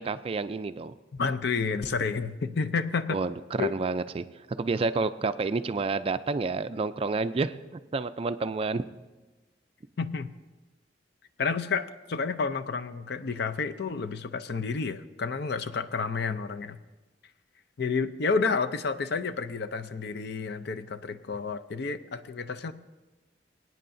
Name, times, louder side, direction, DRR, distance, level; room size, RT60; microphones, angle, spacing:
voice 1, 0.0-0.9 3.1-4.2 4.6-8.8, right 3 dB, 30° right, 12 dB, 0.3 m, -29 dB
voice 2, 1.1-3.2 3.6-3.8 10.0-10.3 11.4-16.8 17.8-22.7, left 5 dB, 60° left, 10 dB, 0.5 m, -30 dB
24.0 x 9.1 x 2.6 m, 1.2 s
head